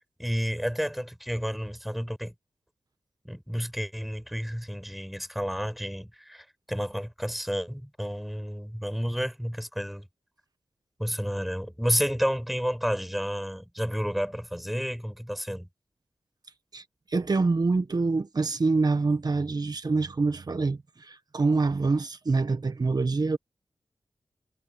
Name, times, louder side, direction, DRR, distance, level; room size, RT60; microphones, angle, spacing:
voice 1, 0.2-2.3 3.2-10.1 11.0-15.7, equal, ahead, 5.1 m, -31 dB
voice 2, 16.7-23.4, right 3 dB, 50° right, 1.5 m, -26 dB
cardioid pair, 45°, 8 cm